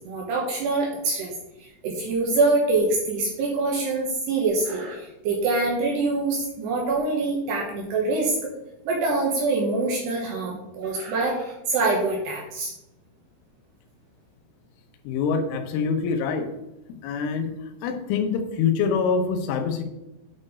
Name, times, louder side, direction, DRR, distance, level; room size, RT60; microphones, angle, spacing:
voice 1, 0.0-1.3 1.8-8.5 8.9-12.7, right 3 dB, 70° right, -1 dB, 2.8 m, -25 dB
voice 2, 15.0-16.5 17.0-17.5 17.8-19.8, left 5 dB, 80° left, 5 dB, 3.4 m, -25 dB
8.7 x 4.3 x 5.0 m, 0.91 s
omnidirectional pair, 5.8 m